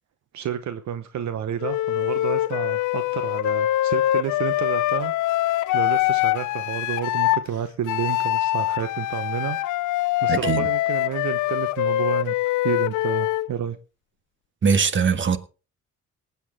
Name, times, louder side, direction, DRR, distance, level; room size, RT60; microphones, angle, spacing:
voice 1, 0.3-5.1 5.4-9.6 9.9-13.8, right 9 dB, 65° right, 1.0 m, -30 dB
Wind instrument woodwind instrument, 1.6-7.4 7.9-13.5, left 15 dB, 80° left, 0.6 m, -24 dB
voice 2, 10.3-10.7 14.6-15.4, right 6 dB, 40° right, 1.6 m, -21 dB
19.0 x 8.4 x 3.6 m
cardioid pair, 90°, 30 cm